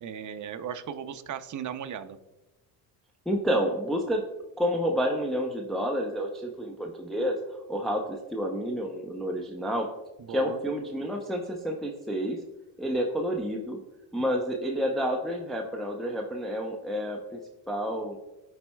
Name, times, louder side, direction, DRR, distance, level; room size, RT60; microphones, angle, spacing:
voice 1, 0.0-2.2 10.2-10.6, right 8 dB, 40° right, 9 dB, 0.7 m, -37 dB
voice 2, 3.3-4.2 4.6-7.4 7.7-9.9 10.3-12.4 12.8-13.8 14.1-17.4 17.7-18.2, equal, ahead, 0 dB, 0.7 m, -29 dB
12.5 x 4.3 x 2.3 m, 1.0 s
supercardioid pair, 75°, 45 cm